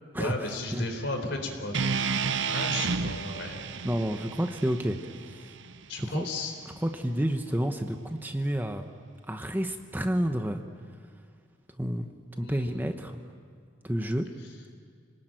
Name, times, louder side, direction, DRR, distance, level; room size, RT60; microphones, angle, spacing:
voice 1, 0.1-1.7 2.4-3.6 5.9-6.5 12.3-12.8, left 2 dB, 70° left, 4 dB, 4.1 m, -34 dB
sound 1, 1.7-5.9, right 5 dB, 70° right, 0.7 m, -31 dB
voice 2, 3.8-5.0 5.3-5.4 6.0-6.3 6.8-8.9 9.3-10.6 11.8-12.1 12.4-13.2 13.8-14.3, equal, 10° right, 6 dB, 0.9 m, -29 dB
27.5 x 19.0 x 9.1 m, 2.1 s
head